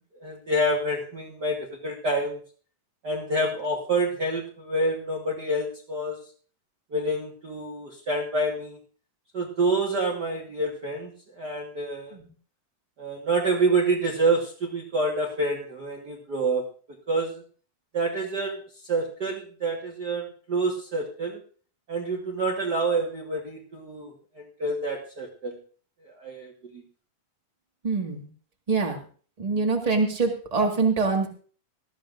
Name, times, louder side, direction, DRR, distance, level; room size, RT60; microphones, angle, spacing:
voice 1, 0.2-1.6 1.8-2.4 3.0-6.2 6.9-8.8 9.3-12.2 13.0-16.6 17.1-17.4 17.9-21.4 21.9-25.6 26.0-26.8, right 2 dB, 45° right, -1 dB, 1.4 m, -27 dB
voice 2, 27.8-28.3 28.7-29.0 29.4-31.3, right 4 dB, 25° right, 2 dB, 0.8 m, -24 dB
19.5 x 13.5 x 2.6 m, 0.42 s
omnidirectional pair, 3.8 m